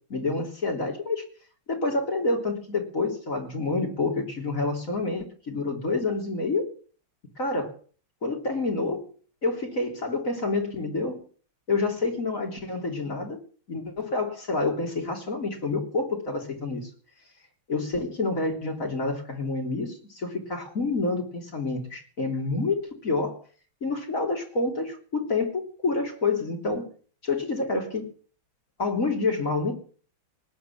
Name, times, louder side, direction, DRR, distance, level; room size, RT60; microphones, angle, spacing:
voice 1, 0.1-1.2 1.7-6.7 7.4-7.7 8.2-9.1 9.4-11.2 11.7-13.4 13.7-16.9 17.7-23.4 23.8-26.9 27.2-28.1 28.8-29.7, left 3 dB, 40° left, 2 dB, 3.8 m, -28 dB
19.5 x 9.3 x 7.5 m, 0.43 s
omnidirectional pair, 2.3 m